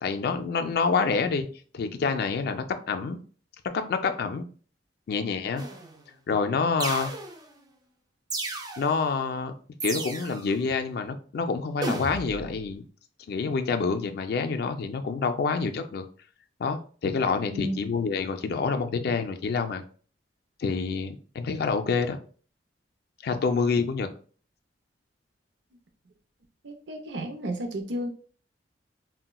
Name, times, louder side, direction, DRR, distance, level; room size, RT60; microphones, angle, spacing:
voice 1, 0.0-1.5 1.7-3.2 3.6-4.4 5.1-5.6 6.3-7.1 8.8-9.5 9.8-12.9 13.3-16.0 16.6-19.8 20.6-22.2 23.2-24.1, left 5 dB, 60° left, 7 dB, 0.3 m, -27 dB
sound 1, 5.6-6.0 6.8-7.6 8.3-9.0 9.8-10.5 11.8-12.5, right 2 dB, 20° right, 0.4 m, -34 dB
voice 2, 17.5-17.8 26.6-28.1, equal, 80° right, 4 dB, 0.6 m, -32 dB
3.9 x 2.1 x 2.2 m, 0.42 s
head